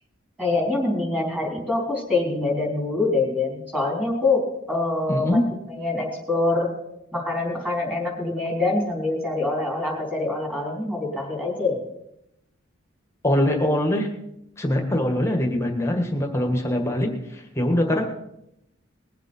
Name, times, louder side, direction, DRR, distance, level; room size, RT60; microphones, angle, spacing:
voice 1, 0.4-5.4 5.8-6.7 7.1-11.8, left 2 dB, 5° right, -1 dB, 3.8 m, -25 dB
voice 2, 5.1-5.4 13.2-14.1 14.6-18.1, left 1 dB, 15° left, 3 dB, 1.6 m, -23 dB
20.5 x 7.5 x 5.5 m, 0.80 s
head